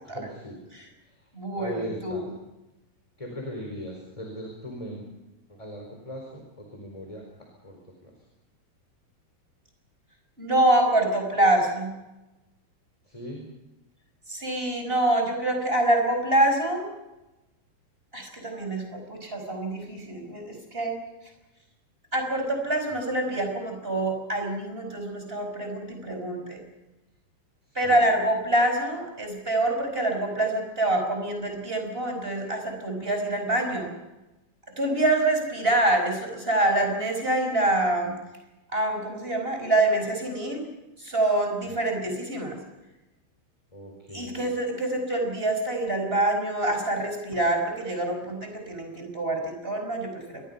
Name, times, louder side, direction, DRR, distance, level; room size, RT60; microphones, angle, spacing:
voice 1, 0.1-0.6 1.5-2.2 3.2-5.1 5.5-7.2 7.6-7.8 8.0-8.1 13.1-13.4 27.8-28.1 43.7-44.5, equal, 10° left, 1 dB, 4.1 m, -39 dB
voice 2, 1.3-2.3 10.4-11.9 14.3-16.8 18.1-20.9 22.1-26.6 27.8-33.9 34.8-38.1 38.7-40.6 41.0-42.6 44.1-50.4, right 1 dB, 15° right, 3 dB, 5.2 m, -26 dB
27.0 x 22.0 x 5.6 m, 1.0 s
omnidirectional pair, 4.5 m